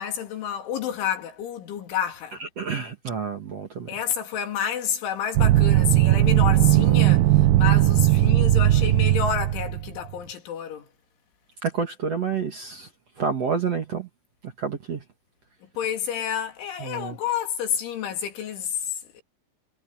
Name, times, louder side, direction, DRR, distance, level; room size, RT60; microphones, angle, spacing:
voice 1, 0.0-2.4 3.9-10.9 15.8-19.2, left 9 dB, 90° left, 5.5 m, -29 dB
voice 2, 2.4-3.9 11.6-12.9 13.2-14.1 14.4-15.0 16.8-17.2, right 6 dB, 45° right, 2.3 m, -29 dB
sound 1, 5.4-9.9, right 14 dB, 75° right, 2.2 m, -18 dB
omnidirectional pair, 5.3 m